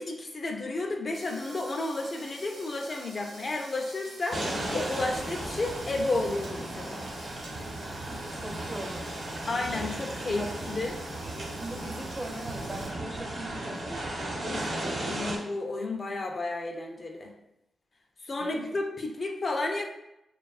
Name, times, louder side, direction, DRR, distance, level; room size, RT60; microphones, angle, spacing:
voice 1, 0.0-4.5 4.7-7.0 9.4-10.9 15.1-17.3 18.2-19.9, left 2 dB, 50° left, 2 dB, 0.4 m, -32 dB
sound 1, 1.1-12.9, right 1 dB, 85° right, 0.6 m, -48 dB
sound 2, 4.3-15.4, right 1 dB, 70° right, 0.9 m, -35 dB
voice 2, 8.4-9.1 10.4-10.6 11.5-14.8 18.4-18.6, right 1 dB, 25° right, 3 dB, 0.4 m, -40 dB
2.5 x 2.2 x 2.3 m, 0.85 s
cardioid pair, 50°, 0 cm